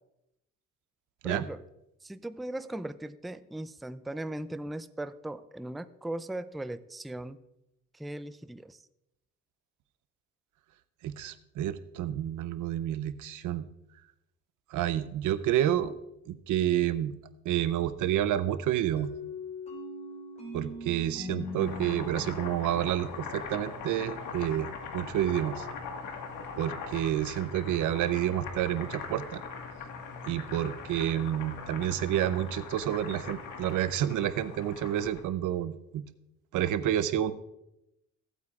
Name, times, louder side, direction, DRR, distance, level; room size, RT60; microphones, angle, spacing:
voice 1, 1.2-1.6 2.0-7.4 7.9-8.8, right 1 dB, ahead, 13 dB, 0.4 m, -38 dB
voice 2, 11.0-13.7 14.7-15.9 16.3-17.1 17.4-19.1 20.5-25.7 26.6-29.4 30.3-36.0 36.5-37.3, right 11 dB, 80° right, 13 dB, 0.7 m, -29 dB
sound 1, 19.0-23.6, left 3 dB, 20° left, 3.9 m, -41 dB
Boiling, 21.4-35.2, left 5 dB, 90° left, 1.7 m, -41 dB
16.5 x 8.3 x 2.4 m, 0.86 s
cardioid pair, 90°, 30 cm